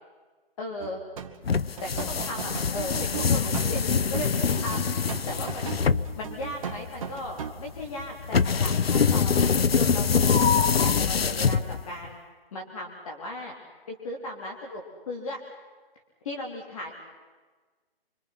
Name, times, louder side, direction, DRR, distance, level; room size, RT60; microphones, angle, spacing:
voice 1, 0.6-1.0 1.8-4.9 5.3-5.9 6.2-9.4 9.8-12.2 12.5-13.5 13.9-15.4 16.2-16.9, left 1 dB, 35° left, 0 dB, 3.8 m, -37 dB
sound 1, 0.8-1.4 1.8-7.5, right 7 dB, 35° right, 1.8 m, -37 dB
sound 2, 1.4-12.1, left 6 dB, 80° left, 1.0 m, -24 dB
28.0 x 26.0 x 6.0 m, 1.3 s
hypercardioid pair, 165°, 30 cm